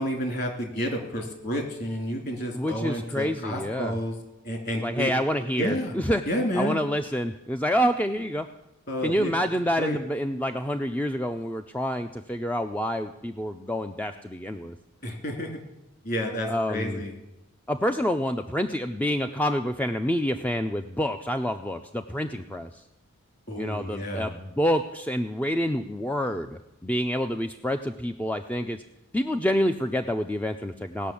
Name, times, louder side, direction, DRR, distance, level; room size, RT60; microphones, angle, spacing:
voice 1, 0.0-4.1 4.4-5.1 5.6-5.9 6.3-6.8 8.9-9.3 9.8-10.0 15.0-15.6 16.0-17.2 23.5-24.3, equal, 45° left, 3 dB, 2.6 m, -30 dB
voice 2, 2.5-4.0 4.8-6.2 6.6-8.5 9.0-14.8 16.5-17.0 17.7-22.8 23.6-28.8 29.1-31.1, equal, 5° left, 7 dB, 0.4 m, -27 dB
18.0 x 6.2 x 8.4 m, 0.95 s
head